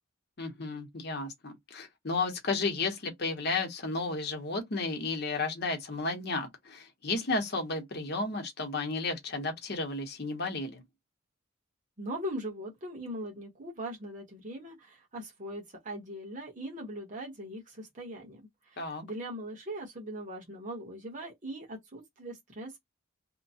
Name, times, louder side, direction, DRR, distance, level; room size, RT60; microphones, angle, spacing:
voice 1, 0.4-10.8 18.8-19.0, left 3 dB, 50° left, 0.9 m, -33 dB
voice 2, 12.0-22.8, right 1 dB, 40° right, 1.1 m, -40 dB
2.8 x 2.1 x 2.7 m
head